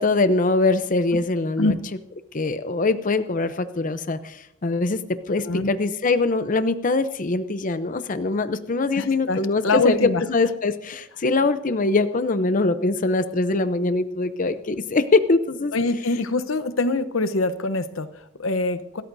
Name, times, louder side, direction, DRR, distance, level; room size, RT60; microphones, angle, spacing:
voice 1, 0.0-1.7 2.3-10.0 10.3-15.7, left 3 dB, 40° left, 11 dB, 0.6 m, -23 dB
voice 2, 5.4-5.7 8.9-10.2 15.7-19.0, left 3 dB, 85° left, 12 dB, 0.9 m, -24 dB
27.5 x 13.5 x 2.7 m, 0.79 s
head